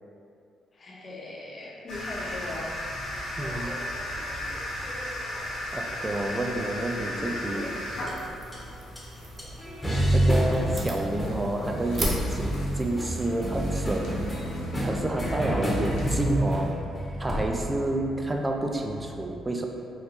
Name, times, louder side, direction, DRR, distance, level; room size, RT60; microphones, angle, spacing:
voice 1, 0.7-2.8, left 2 dB, 35° left, -4 dB, 0.9 m, -39 dB
sound 1, 1.9-16.7, left 1 dB, 75° left, 0.9 m, -37 dB
sound 2, 2.9-5.4 6.4-6.9 8.1-8.2 8.5-8.6 9.0-9.1 9.4-19.1, right 1 dB, 10° left, 0.9 m, -29 dB
voice 2, 3.4-3.7 5.7-7.6 10.1-14.2 14.8-16.7 17.2-19.7, right 1 dB, 20° right, 2 dB, 0.4 m, -29 dB
sound 3, 7.4-14.6, right 1 dB, 35° right, 0.9 m, -38 dB
3.9 x 2.2 x 4.3 m, 2.5 s
cardioid pair, 90°, 0 cm